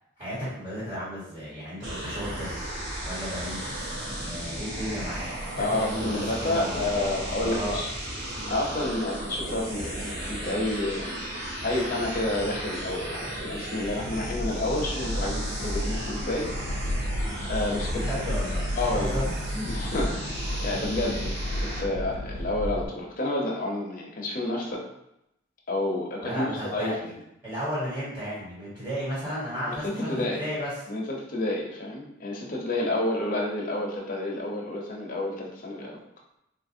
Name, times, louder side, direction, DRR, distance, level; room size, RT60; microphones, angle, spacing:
voice 1, 0.2-2.6 3.0-3.6 4.2-5.3 5.6-6.9 7.4-7.8 17.9-18.6 18.9-19.7 20.0-20.3 26.2-27.0 27.4-30.7, equal, 15° right, -11 dB, 1.4 m, -33 dB
sound 1, 1.8-21.8, right 1 dB, 90° right, 1.2 m, -35 dB
voice 2, 5.6-7.9 8.5-11.1 11.6-16.5 17.5-18.0 18.8-19.2 19.7-24.8 25.7-27.2 29.7-30.5 30.9-36.0, left 2 dB, 45° left, -2 dB, 0.7 m, -30 dB
sound 2, 13.8-22.9, equal, 85° left, 0.5 m, -32 dB
3.8 x 2.5 x 2.7 m, 0.83 s
head